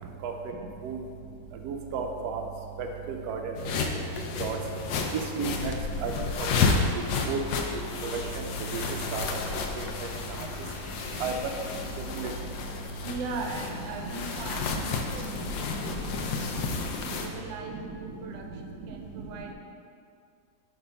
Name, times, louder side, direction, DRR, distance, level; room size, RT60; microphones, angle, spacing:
voice 1, 0.2-0.5 0.8-1.0 1.6-2.4 2.8-3.4 4.4-4.6 5.4-5.7 6.0-6.1 6.6-6.7 7.3-7.4 7.7-7.8 8.7-8.8 9.1-9.3 9.8-9.9 11.2-11.3 12.2-12.3 16.1-16.2 17.7-17.8, right 7 dB, 70° right, 3 dB, 1.0 m, -32 dB
sound 1, 3.6-17.3, left 4 dB, 75° left, 1.1 m, -31 dB
sound 2, 9.1-15.5 16.1-16.6, left 1 dB, 30° left, 0.6 m, -52 dB
voice 2, 12.8-16.7 17.1-19.5, right 3 dB, 85° right, 2 dB, 1.4 m, -40 dB
5.0 x 3.5 x 5.3 m, 2.3 s
omnidirectional pair, 2.0 m